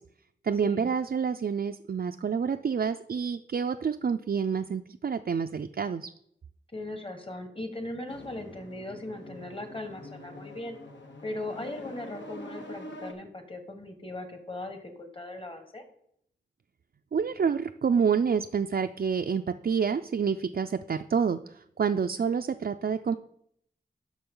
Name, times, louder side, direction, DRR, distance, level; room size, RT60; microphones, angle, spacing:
voice 1, 0.4-6.1 17.1-23.1, right 6 dB, 50° right, 7 dB, 0.4 m, -28 dB
voice 2, 6.7-10.8 11.2-15.8, left 2 dB, 30° left, 6 dB, 1.6 m, -39 dB
sound 1, 8.1-13.1, left 1 dB, 70° left, 1.4 m, -45 dB
11.0 x 6.1 x 3.8 m, 0.72 s
wide cardioid pair, 50°, 19 cm